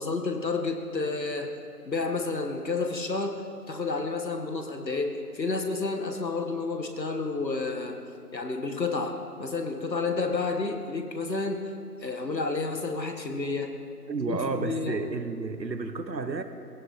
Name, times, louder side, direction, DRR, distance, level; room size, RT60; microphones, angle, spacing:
voice 1, 0.0-1.5 1.9-3.4 3.7-8.0 8.3-11.7 12.0-13.7 14.3-15.0, left 3 dB, 90° left, 5 dB, 2.0 m, -30 dB
voice 2, 14.1-16.4, right 4 dB, 85° right, 9 dB, 1.4 m, -31 dB
17.0 x 15.5 x 4.4 m, 2.4 s
figure-of-eight pair, 175°, 49 cm